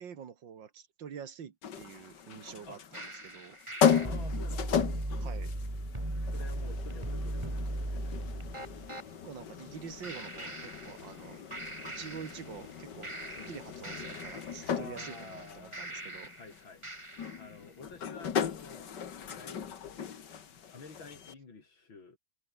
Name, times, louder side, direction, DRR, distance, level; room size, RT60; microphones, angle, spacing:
voice 1, 0.0-3.6 5.2-5.5 9.2-11.4 11.8-13.1 13.5-16.3, right 7 dB, 70° right, 2.4 m, -46 dB
sound 1, 1.6-21.3, left 7 dB, 65° left, 2.2 m, -36 dB
sound 2, 2.9-9.1 10.0-11.3 11.5-12.7 13.0-16.5 16.8-17.5, right 1 dB, 15° right, 3.4 m, -38 dB
voice 2, 4.0-5.1 6.2-8.5 13.3-13.5 14.7-15.8 16.3-17.1 17.4-18.9 19.3-20.2 20.7-22.2, left 4 dB, 90° left, 4.8 m, -51 dB
omnidirectional pair, 2.1 m